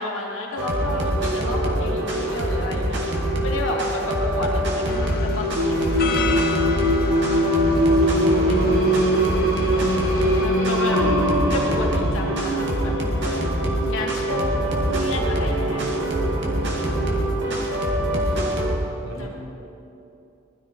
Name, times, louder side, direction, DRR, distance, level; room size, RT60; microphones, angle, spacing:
voice 1, 0.0-6.4 7.3-7.7 8.0-8.8 9.7-9.8 10.4-13.4 13.9-15.9 16.6-16.7 17.4-18.4 19.2-19.3, left 2 dB, 70° left, -2 dB, 2.8 m, -32 dB
sound 1, 0.6-18.8, right 1 dB, 55° right, 2.1 m, -24 dB
sound 2, 4.9-10.5, left 3 dB, 45° left, 1.0 m, -30 dB
Singing, 5.5-17.3, equal, 25° right, 3.5 m, -24 dB
voice 2, 7.9-8.9 10.1-10.4 16.2-17.2 19.0-19.3, equal, 75° right, -5 dB, 4.1 m, -43 dB
20.0 x 13.0 x 4.8 m, 2.7 s
head